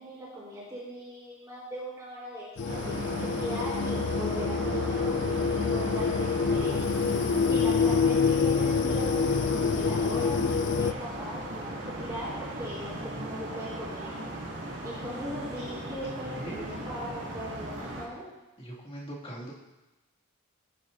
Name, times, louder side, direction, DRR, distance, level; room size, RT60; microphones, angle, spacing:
voice 1, 0.0-6.9 7.5-14.3 14.8-18.3, equal, 10° right, -13 dB, 4.0 m, -39 dB
sound 1, 2.6-10.9, left 5 dB, 50° left, 0.3 m, -27 dB
sound 2, 2.7-18.1, right 1 dB, 60° right, 2.7 m, -37 dB
voice 2, 16.1-16.7 18.6-19.5, right 1 dB, 25° left, -6 dB, 2.5 m, -40 dB
18.5 x 9.4 x 2.8 m, 1.1 s
head